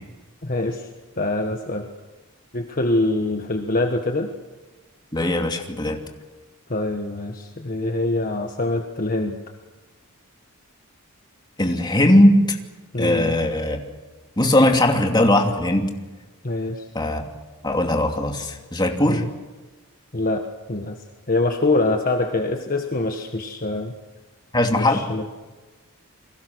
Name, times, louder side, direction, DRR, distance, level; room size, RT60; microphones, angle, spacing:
voice 1, 0.4-0.9 1.2-1.9 2.5-4.3 6.7-9.4 12.9-13.3 16.4-16.8 19.0-19.3 20.1-20.4 20.7-21.0 21.3-23.9 24.7-25.2, left 2 dB, 40° left, 3 dB, 1.5 m, -24 dB
voice 2, 5.1-6.0 11.6-12.6 13.0-13.8 14.4-15.9 16.9-17.2 17.6-19.2 24.5-25.0, left 1 dB, 20° left, 2 dB, 2.7 m, -19 dB
30.0 x 22.0 x 6.3 m, 1.2 s
head